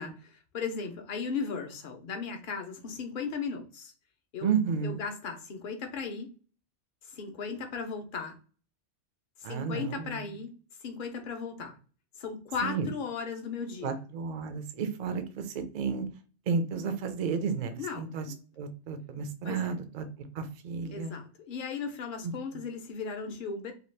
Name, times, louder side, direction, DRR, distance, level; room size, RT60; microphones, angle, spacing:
voice 1, 0.0-3.9 4.3-4.5 4.8-6.3 7.0-8.3 9.4-10.5 10.8-11.8 12.2-14.0 17.8-18.4 19.4-19.6 20.9-23.7, left 5 dB, 55° left, 5 dB, 0.6 m, -36 dB
voice 2, 4.4-5.0 9.4-10.4 12.6-12.9 13.8-16.1 16.5-18.3 18.6-21.2 22.2-22.3, right 5 dB, 60° right, 8 dB, 0.4 m, -32 dB
2.8 x 2.3 x 3.2 m, 0.38 s
omnidirectional pair, 1.2 m